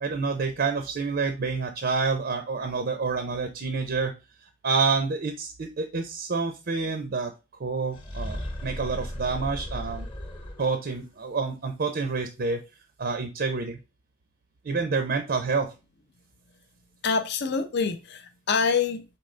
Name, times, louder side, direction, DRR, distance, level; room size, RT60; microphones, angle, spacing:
voice 1, 0.0-4.1 4.6-7.3 7.6-10.0 10.6-12.6 13.0-13.8 14.6-15.7, right 4 dB, 50° right, 0.5 m, -28 dB
sound 1, 7.9-10.9, equal, 25° left, 0.9 m, -36 dB
voice 2, 17.0-19.0, left 5 dB, 55° left, 0.5 m, -26 dB
4.3 x 3.7 x 3.2 m
head